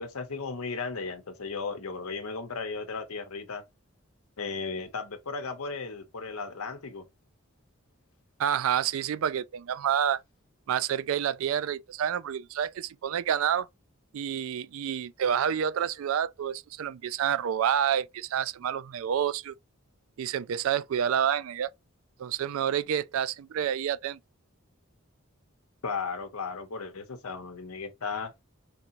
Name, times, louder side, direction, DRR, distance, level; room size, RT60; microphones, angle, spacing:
voice 1, 0.0-3.6 4.4-7.0 25.8-28.3, left 4 dB, 90° left, 0.8 m, -35 dB
voice 2, 8.4-10.2 10.7-13.7 14.1-19.5 20.2-21.7 22.2-24.2, right 9 dB, 75° right, 0.3 m, -28 dB
4.7 x 2.9 x 2.6 m
head